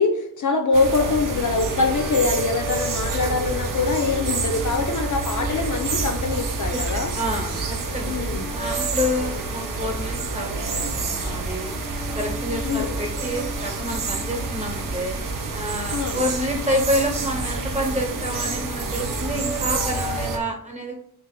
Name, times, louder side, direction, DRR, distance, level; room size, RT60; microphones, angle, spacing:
voice 1, 0.0-7.1 8.1-8.5 12.6-13.0 15.9-16.2, left 4 dB, 55° left, 4 dB, 0.5 m, -23 dB
sound 1, 0.7-7.8 8.2-16.1 17.8-20.4, right 1 dB, ahead, 0.3 m, -38 dB
sound 2, 0.7-20.4, right 3 dB, 55° right, 0.6 m, -28 dB
voice 2, 6.7-8.2 8.5-11.7 12.1-15.2 15.5-20.9, equal, 20° right, 0 dB, 1.0 m, -28 dB
3.3 x 2.5 x 3.7 m, 0.71 s
wide cardioid pair, 95°, 38 cm